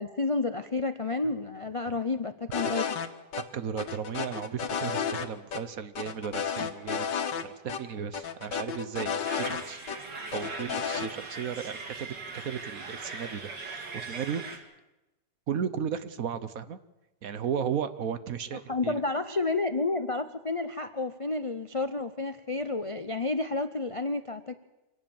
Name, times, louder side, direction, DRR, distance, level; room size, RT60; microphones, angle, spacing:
voice 1, 0.0-2.9 18.7-24.5, left 3 dB, 60° left, 10 dB, 0.3 m, -30 dB
sound 1, 2.5-3.1 3.3-3.4 3.8-5.3 5.5-5.6 6.0-7.4 7.7-7.8 8.1-10.0 10.3-11.1, left 7 dB, 85° left, 2.1 m, -32 dB
voice 2, 3.4-9.8 10.3-14.6 15.5-16.8 17.2-19.0, right 7 dB, 55° right, 13 dB, 1.3 m, -35 dB
sound 2, 9.2-14.6, right 4 dB, 75° right, 3.0 m, -40 dB
25.5 x 18.0 x 7.2 m, 1.0 s
omnidirectional pair, 1.9 m